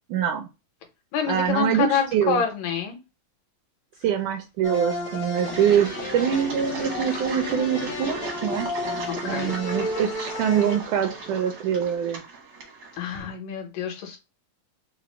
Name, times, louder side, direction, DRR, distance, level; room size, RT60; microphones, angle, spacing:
voice 1, 0.1-0.5 1.3-2.4 4.0-12.2, right 9 dB, 80° right, 5 dB, 1.8 m, -24 dB
voice 2, 1.1-3.0 9.1-9.5 13.0-14.2, left 7 dB, 80° left, 3 dB, 2.7 m, -27 dB
sound 1, 4.6-11.6, left 2 dB, 60° left, 1.2 m, -33 dB
Engine, 5.4-13.2, right 1 dB, 65° right, 1.1 m, -36 dB
5.8 x 2.1 x 3.1 m, 0.27 s
omnidirectional pair, 3.9 m